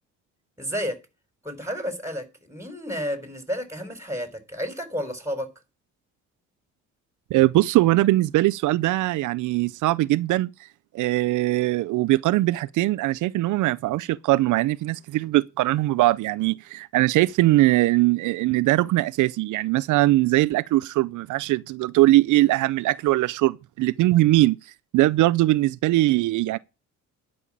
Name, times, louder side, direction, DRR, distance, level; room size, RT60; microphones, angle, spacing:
voice 1, 0.6-1.0 1.4-5.5, equal, 10° right, 3.9 m, -31 dB
voice 2, 7.3-10.5 10.9-24.6 24.9-26.6, right 17 dB, 80° right, 0.5 m, -21 dB
11.0 x 5.5 x 8.6 m
cardioid pair, 90°, 30 cm